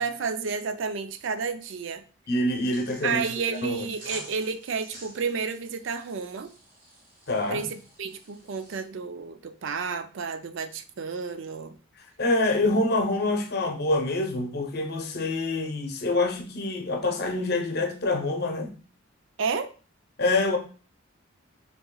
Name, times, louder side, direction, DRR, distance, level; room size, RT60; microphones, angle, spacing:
voice 1, 0.0-2.0 3.0-6.5 7.5-11.8 19.4-19.7, right 5 dB, 65° right, 0.4 m, -31 dB
voice 2, 2.3-3.2 3.5-3.9 7.3-7.6 12.2-18.7 20.2-20.6, left 2 dB, 50° left, 0.7 m, -26 dB
sound 1, 2.6-8.8, right 1 dB, 40° right, 1.4 m, -47 dB
6.7 x 2.9 x 2.3 m
head